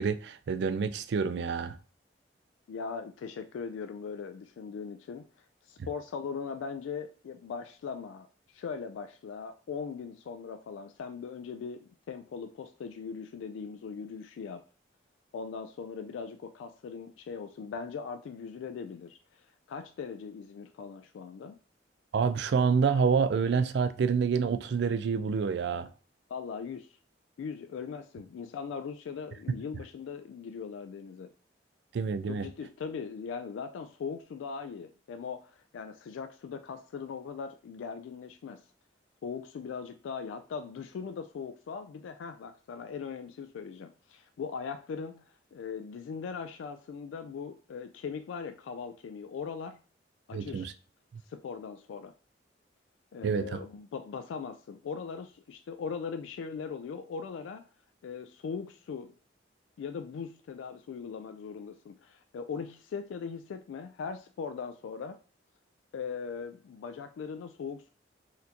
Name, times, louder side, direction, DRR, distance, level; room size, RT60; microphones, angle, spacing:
voice 1, 0.0-1.8 22.1-25.9 31.9-32.5 50.3-50.7 53.2-53.4, right 5 dB, 65° right, 0.3 m, -27 dB
voice 2, 2.7-5.3 5.6-14.6 15.3-21.6 26.3-27.0 27.4-31.3 32.3-38.6 39.2-45.3 45.5-49.8 50.3-50.7 51.3-52.1 53.1-57.7 58.0-59.1 59.8-65.2 65.9-67.9, left 6 dB, 90° left, 0.3 m, -40 dB
4.2 x 2.6 x 2.8 m
head